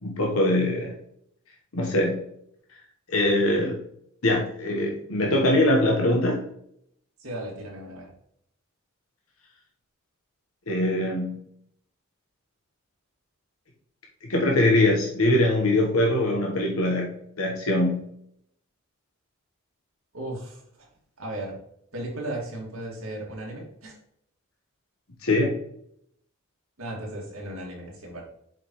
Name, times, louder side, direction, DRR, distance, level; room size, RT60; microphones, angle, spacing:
voice 1, 0.0-0.9 1.7-2.2 3.1-3.8 4.2-6.4 10.7-11.4 14.3-18.0 25.2-25.5, left 1 dB, 70° left, 0 dB, 1.2 m, -22 dB
voice 2, 7.2-8.1 20.1-20.9 21.2-21.6 21.9-24.0 26.8-28.2, right 1 dB, 70° right, -1 dB, 2.3 m, -36 dB
7.3 x 5.1 x 3.1 m, 0.71 s
head